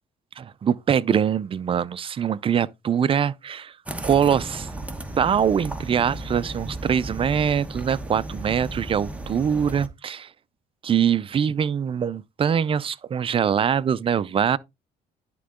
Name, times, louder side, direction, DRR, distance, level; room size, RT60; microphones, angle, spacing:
voice 1, 0.4-3.7 4.0-4.7 5.2-10.3 10.8-14.6, right 8 dB, 30° right, 0.4 m, -23 dB
sound 1, 3.9-9.9, right 2 dB, 10° right, 1.0 m, -34 dB
11.0 x 3.8 x 3.6 m
cardioid pair, 110°, 17 cm